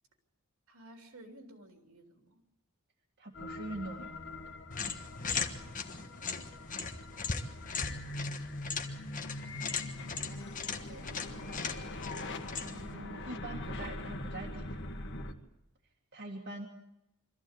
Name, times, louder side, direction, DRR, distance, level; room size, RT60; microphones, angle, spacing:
voice 1, 0.7-2.4 9.1-9.8 10.7-11.7, right 1 dB, 70° right, 4 dB, 3.2 m, -55 dB
voice 2, 3.2-4.1 12.6-14.8 16.1-16.7, right 2 dB, 50° right, -1 dB, 2.2 m, -43 dB
sound 1, 3.3-15.3, left 2 dB, 55° left, 1.8 m, -42 dB
sound 2, 4.7-12.9, left 5 dB, 35° left, 1.3 m, -39 dB
24.0 x 14.5 x 8.1 m, 0.88 s
head